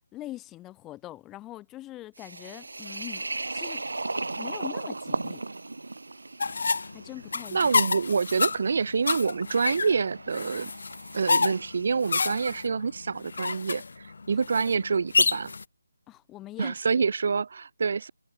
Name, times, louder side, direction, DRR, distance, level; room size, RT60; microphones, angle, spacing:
voice 1, 0.1-3.3 3.5-3.8 4.3-5.5 6.9-7.7 14.3-14.4 16.1-16.8, left 15 dB, 10° left, 1.9 m, -42 dB
sound 1, 2.2-12.0, right 2 dB, 80° right, 6.5 m, -37 dB
sound 2, 6.4-15.6, left 4 dB, 60° left, 1.4 m, -29 dB
voice 2, 7.5-10.7 11.1-13.8 14.3-15.5 16.6-18.1, right 5 dB, 45° right, 2.5 m, -26 dB
figure-of-eight pair, 165°, 0 cm